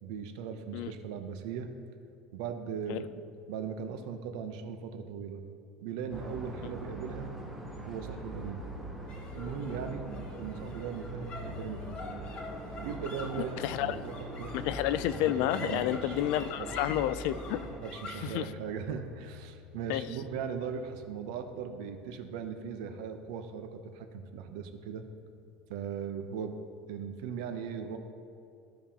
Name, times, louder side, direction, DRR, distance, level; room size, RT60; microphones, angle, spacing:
voice 1, 0.0-1.7 2.3-3.1 3.5-5.4 5.8-7.3 7.9-8.6 9.3-10.0 10.4-11.9 12.8-14.5 15.6-16.2 16.6-16.8 17.8-25.0 25.7-26.6 26.9-28.0, right 7 dB, 80° right, 7 dB, 0.7 m, -38 dB
sound 1, 6.1-17.8, right 1 dB, 5° right, 0.8 m, -42 dB
sound 2, 9.1-25.6, left 3 dB, 30° left, 1.1 m, -48 dB
voice 2, 13.6-14.0 14.5-17.6 18.2-18.5 19.9-20.1, left 12 dB, 65° left, 14 dB, 0.3 m, -30 dB
15.0 x 5.4 x 2.9 m, 2.4 s
cardioid pair, 170°, 3 cm